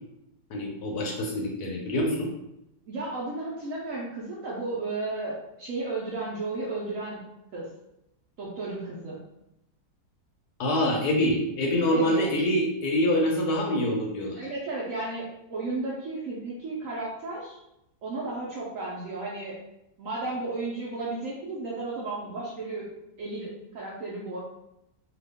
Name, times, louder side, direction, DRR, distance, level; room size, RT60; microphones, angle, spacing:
voice 1, 0.5-2.3 10.6-14.4, left 1 dB, 70° left, 0 dB, 1.0 m, -25 dB
voice 2, 2.9-7.2 7.5-7.7 8.4-9.2 11.9-12.3 14.4-17.6 18.0-19.6 20.0-22.9 23.2-24.4, right 2 dB, 65° right, -5 dB, 0.8 m, -33 dB
2.8 x 2.4 x 3.4 m, 0.84 s
omnidirectional pair, 1.9 m